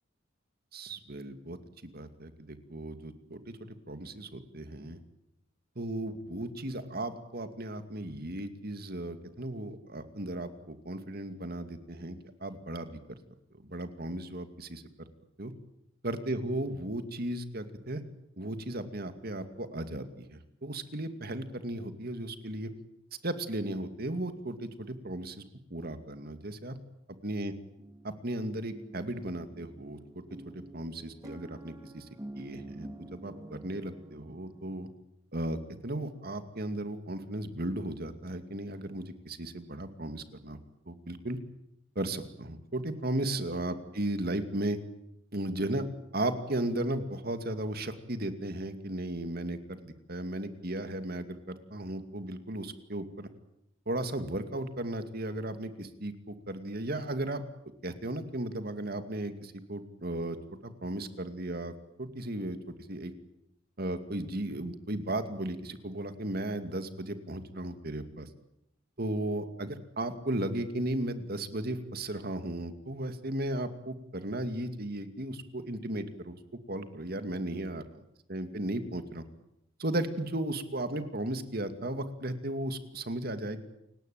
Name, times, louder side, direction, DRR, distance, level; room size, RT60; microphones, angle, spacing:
voice 1, 0.7-1.6 1.9-5.0 5.8-13.0 13.6-14.8 15.4-15.5 16.0-18.0 18.4-22.7 23.2-25.4 25.7-26.8 27.2-27.5 28.0-30.2 30.5-32.0 32.3-34.9 35.3-40.6 40.9-41.4 42.0-44.8 45.3-45.8 46.1-53.3 53.9-57.4 57.8-60.4 60.6-61.7 62.0-62.6 62.9-63.1 63.8-68.3 69.0-76.4 76.7-78.0 78.3-79.2 79.8-83.6, right 1 dB, 55° right, 9 dB, 2.4 m, -35 dB
sound 1, 27.8-34.9, right 1 dB, 20° right, 1.8 m, -48 dB
29.5 x 18.0 x 9.3 m, 0.81 s
head